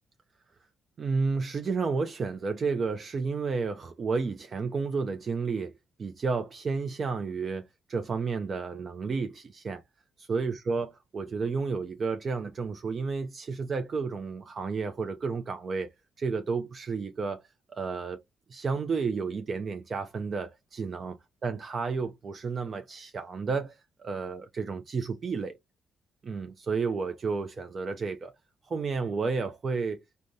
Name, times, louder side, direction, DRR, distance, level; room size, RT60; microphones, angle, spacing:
voice 1, 1.0-5.7 6.0-7.6 7.9-9.8 10.3-15.9 16.2-17.4 17.8-18.2 18.5-21.1 21.4-25.6 26.2-28.3 28.7-30.0, right 4 dB, 45° right, 0.4 m, -31 dB
3.4 x 2.1 x 2.6 m
cardioid pair, 90°, 0 cm